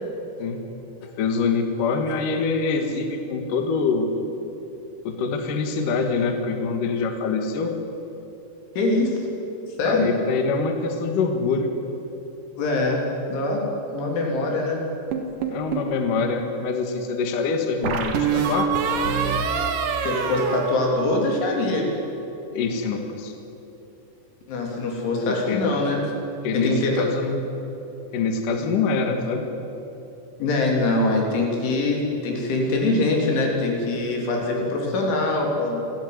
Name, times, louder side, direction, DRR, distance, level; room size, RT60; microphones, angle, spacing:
voice 1, 1.0-4.1 5.0-7.7 9.8-11.7 15.5-18.7 22.5-23.3 25.3-25.6 26.4-27.4 28.1-29.5, left 4 dB, 55° left, 5 dB, 2.7 m, -25 dB
voice 2, 8.8-9.2 9.8-10.1 12.6-13.0 13.3-14.9 20.1-21.9 24.5-26.2 26.5-27.1 30.4-35.8, left 2 dB, 85° left, 0 dB, 5.7 m, -23 dB
sound 1, 15.1-16.0 17.8-21.5, right 6 dB, 60° right, 2.6 m, -25 dB
29.0 x 11.5 x 9.5 m, 3.0 s
omnidirectional pair, 5.3 m